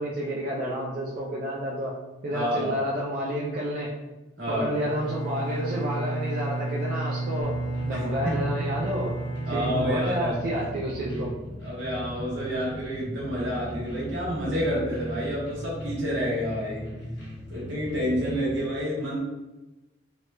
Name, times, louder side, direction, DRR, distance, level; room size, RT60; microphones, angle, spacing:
voice 1, 0.0-1.9 2.2-3.9 4.5-7.6 7.8-9.1 9.5-11.3, equal, 50° right, -5 dB, 0.4 m, -30 dB
voice 2, 2.3-2.7 4.4-4.7 7.9-8.3 9.4-10.3 11.6-16.9 17.5-19.2, equal, 80° right, -6 dB, 1.0 m, -29 dB
Bowed string instrument, 4.7-10.8, right 2 dB, 5° left, 0.7 m, -32 dB
sound 1, 7.4-18.6, equal, 70° left, 0.7 m, -38 dB
2.9 x 2.2 x 2.2 m, 1.1 s
head